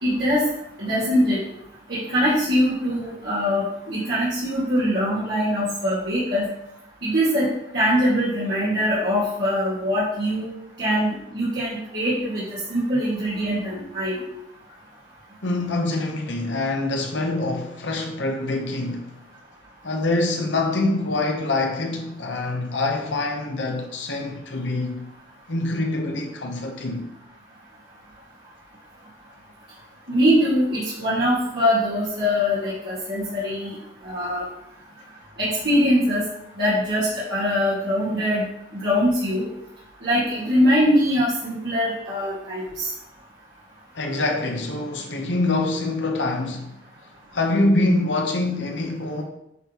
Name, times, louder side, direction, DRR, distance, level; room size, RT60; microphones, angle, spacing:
voice 1, 0.0-0.4 0.8-1.4 1.9-6.5 7.0-7.5 7.7-10.5 10.8-14.2 30.1-33.7 34.0-34.4 35.4-36.3 36.6-38.4 38.7-39.5 40.0-42.9, equal, 60° right, 2.0 m, -22 dB
voice 2, 15.4-19.1 19.8-25.0 25.5-27.1 43.9-46.8 47.3-49.2, left 2 dB, 80° left, 1.0 m, -25 dB
9.7 x 3.8 x 3.0 m
head